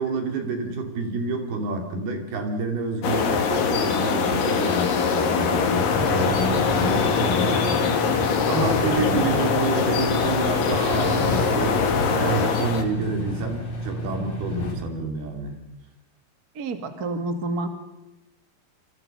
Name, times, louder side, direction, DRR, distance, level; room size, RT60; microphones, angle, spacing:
voice 1, 0.0-11.8 12.1-15.6, right 3 dB, 70° right, 5 dB, 4.8 m, -28 dB
sound 1, 3.0-12.8, left 6 dB, 60° left, 3.7 m, -23 dB
sound 2, 5.7-14.7, left 1 dB, 45° left, 6.4 m, -30 dB
voice 2, 8.9-9.2 16.5-17.7, right 3 dB, 35° right, 7 dB, 1.7 m, -29 dB
27.5 x 26.5 x 5.5 m, 0.93 s
omnidirectional pair, 4.6 m